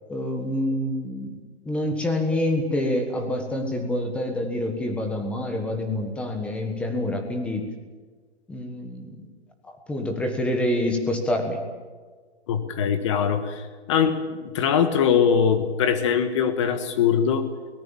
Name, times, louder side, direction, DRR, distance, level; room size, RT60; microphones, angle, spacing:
voice 1, 0.1-1.3 1.6-7.7 8.5-9.2 9.6-11.6, left 1 dB, 5° left, 4 dB, 1.5 m, -27 dB
voice 2, 12.5-17.5, left 7 dB, 30° left, 9 dB, 1.6 m, -22 dB
23.0 x 19.0 x 7.2 m, 1.5 s
hypercardioid pair, 170°, 33 cm